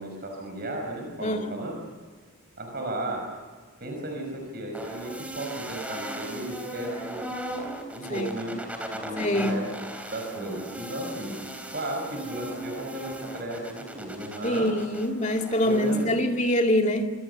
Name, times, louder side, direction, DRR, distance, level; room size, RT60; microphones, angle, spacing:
voice 1, 0.0-1.8 2.6-3.2 3.8-7.2 7.9-8.6 8.9-9.8 10.1-11.5 11.7-14.8 15.6-16.1, right 1 dB, 45° right, 5.5 m, -34 dB
voice 2, 1.2-1.6 8.1-8.3 9.2-9.6 10.4-10.5 14.4-17.1, left 1 dB, 35° left, 2.3 m, -25 dB
sound 1, 4.7-16.0, right 1 dB, 5° right, 3.4 m, -38 dB
26.0 x 26.0 x 6.9 m
head